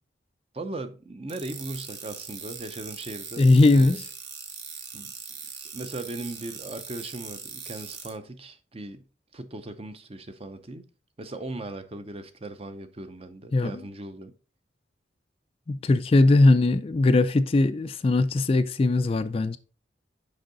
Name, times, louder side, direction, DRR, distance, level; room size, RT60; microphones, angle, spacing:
voice 1, 0.5-4.0 4.9-5.1 5.7-9.0 9.3-10.8 11.2-14.3, right 2 dB, 30° right, 0.6 m, -38 dB
sound 1, 1.3-8.1, right 6 dB, 70° right, 1.3 m, -41 dB
voice 2, 3.4-4.0 13.5-13.7 15.7-19.6, left 2 dB, 30° left, 0.3 m, -20 dB
6.5 x 5.5 x 3.9 m
head